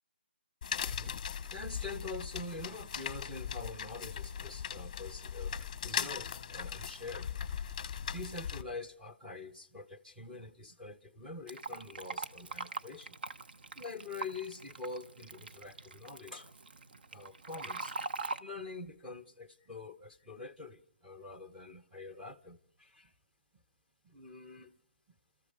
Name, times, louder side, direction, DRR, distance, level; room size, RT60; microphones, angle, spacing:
sound 1, 0.6-8.6, left 7 dB, 30° left, 0.9 m, -39 dB
voice 1, 0.9-5.5 5.8-7.3 8.0-13.2 13.8-16.5 17.1-17.9 18.4-23.1 24.0-24.8, left 3 dB, 5° right, 0.8 m, -45 dB
Fill (with liquid), 11.5-18.4, right 3 dB, 55° right, 1.0 m, -42 dB
30.0 x 14.0 x 6.7 m
hypercardioid pair, 170°, 6 cm